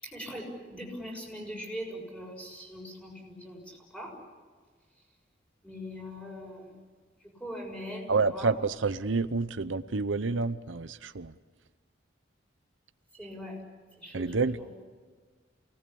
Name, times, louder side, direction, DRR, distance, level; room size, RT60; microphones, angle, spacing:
voice 1, 0.0-4.1 5.6-6.7 7.4-8.6 13.1-13.6 13.9-14.7, equal, 5° left, -1 dB, 6.7 m, -41 dB
voice 2, 8.1-11.3 14.1-14.6, right 4 dB, 85° right, 12 dB, 0.8 m, -28 dB
28.5 x 19.0 x 8.6 m, 1.5 s
head